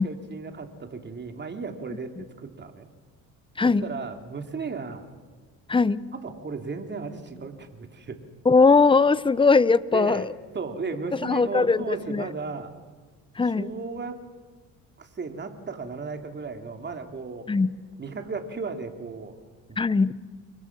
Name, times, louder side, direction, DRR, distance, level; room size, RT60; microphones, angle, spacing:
voice 1, 0.0-2.9 3.6-5.1 6.1-8.2 9.9-12.7 13.4-14.2 15.0-17.5 18.0-19.4 19.7-19.8, right 4 dB, 35° right, 5 dB, 3.3 m, -35 dB
voice 2, 8.4-10.3 11.2-12.2 13.4-13.7 17.5-17.7 19.8-20.1, left 4 dB, 15° left, 18 dB, 0.8 m, -20 dB
29.5 x 24.0 x 6.2 m, 1.4 s
supercardioid pair, 90°, 32 cm